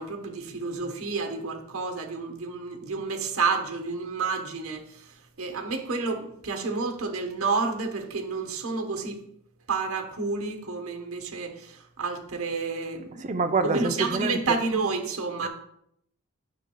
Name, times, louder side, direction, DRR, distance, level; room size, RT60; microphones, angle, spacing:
voice 1, 0.0-9.2 9.7-13.2 13.6-15.5, right 4 dB, 75° right, 1.1 m, -30 dB
voice 2, 13.2-14.4 15.4-15.5, right 3 dB, 35° right, 0.5 m, -26 dB
9.4 x 6.3 x 2.3 m
head